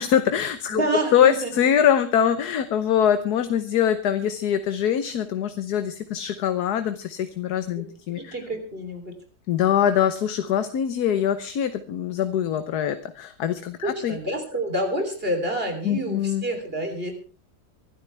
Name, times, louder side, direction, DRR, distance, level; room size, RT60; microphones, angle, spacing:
voice 1, 0.0-0.8 1.1-8.3 9.5-14.2 15.8-16.4, left 9 dB, 65° left, 10 dB, 1.4 m, -23 dB
voice 2, 0.7-1.5 7.7-7.8 8.1-9.2 13.8-17.1, right 1 dB, 30° right, 5 dB, 3.6 m, -28 dB
24.0 x 12.5 x 3.4 m, 0.37 s
omnidirectional pair, 1.9 m